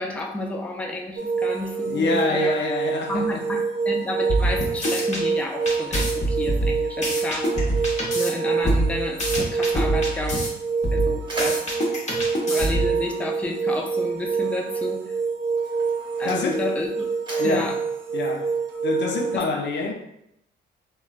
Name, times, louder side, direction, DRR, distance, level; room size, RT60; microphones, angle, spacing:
voice 1, 0.0-2.6 3.1-7.5 7.9-10.4 10.9-11.6 12.5-15.0 16.2-17.0 17.4-17.7 19.3-19.5, left 2 dB, 5° left, 0.4 m, -31 dB
sound 1, 1.2-19.4, right 5 dB, 75° right, 0.6 m, -26 dB
voice 2, 1.9-3.5 16.2-16.7 17.4-17.8 18.1-18.5 18.8-19.9, left 3 dB, 65° left, 0.5 m, -26 dB
sound 2, 4.3-5.2 5.7-8.3 8.6-10.5 10.8-13.0, right 1 dB, 35° left, 0.9 m, -25 dB
Mechanisms, 10.8-13.5 14.5-14.7 15.5-19.1, right 1 dB, 25° right, 1.0 m, -40 dB
3.1 x 2.2 x 2.4 m
cardioid pair, 90°, 20 cm